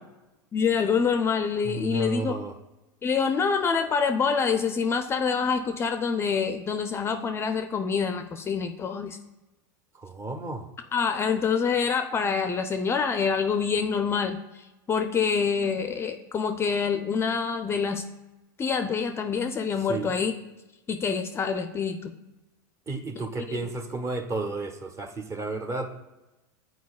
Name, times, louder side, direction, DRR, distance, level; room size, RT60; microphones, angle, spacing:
voice 1, 0.5-2.4 3.0-9.2 10.9-18.0 18.6-20.3 20.9-22.1 23.5-23.6, left 6 dB, 25° left, 8 dB, 0.4 m, -26 dB
voice 2, 1.6-2.5 10.0-10.7 19.9-20.1 22.9-25.9, right 3 dB, 25° right, 6 dB, 0.8 m, -32 dB
9.3 x 4.4 x 2.3 m, 1.0 s
hypercardioid pair, 110°, 11 cm